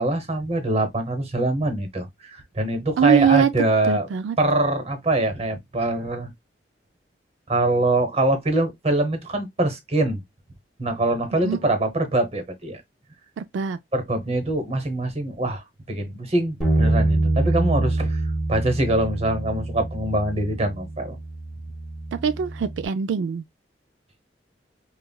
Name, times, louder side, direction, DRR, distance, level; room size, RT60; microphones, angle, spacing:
voice 1, 0.0-4.1 4.4-6.3 7.5-10.2 10.8-12.8 13.9-18.2 18.5-21.2, right 2 dB, 35° right, 1.0 m, -24 dB
voice 2, 3.0-3.5 3.9-4.4 11.4-11.6 13.4-13.8 22.1-23.4, right 8 dB, 90° right, 0.3 m, -22 dB
Bass guitar, 16.6-22.9, right 2 dB, ahead, 1.2 m, -25 dB
5.4 x 2.3 x 2.2 m
head